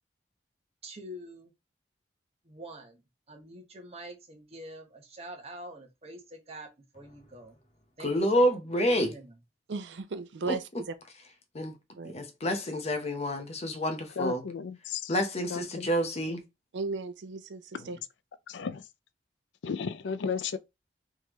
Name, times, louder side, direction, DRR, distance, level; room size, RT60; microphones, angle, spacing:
voice 1, 0.8-1.5 2.4-3.0 3.3-7.6 8.0-8.4 8.9-9.3, right 1 dB, 35° right, 1.0 m, -45 dB
voice 2, 8.0-9.1 10.5-10.6 11.5-11.8 12.0-14.4 15.1-16.4 17.8-17.9, equal, 35° left, 0.8 m, -28 dB
voice 3, 9.7-10.9 12.0-12.1 16.7-18.0, right 4 dB, 85° right, 0.5 m, -36 dB
voice 4, 14.2-15.1 15.5-15.9 18.5-18.8 19.6-20.6, left 6 dB, 85° left, 0.4 m, -34 dB
3.6 x 3.2 x 3.0 m
head